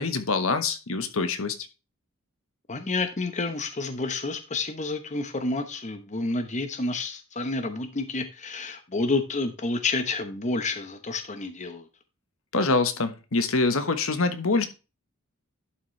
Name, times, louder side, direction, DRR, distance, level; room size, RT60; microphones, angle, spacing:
voice 1, 0.0-1.6 12.5-14.7, left 3 dB, 70° left, 9 dB, 1.2 m, -25 dB
voice 2, 2.7-11.9, left 3 dB, 35° left, 8 dB, 1.0 m, -29 dB
11.5 x 6.1 x 3.2 m, 0.30 s
head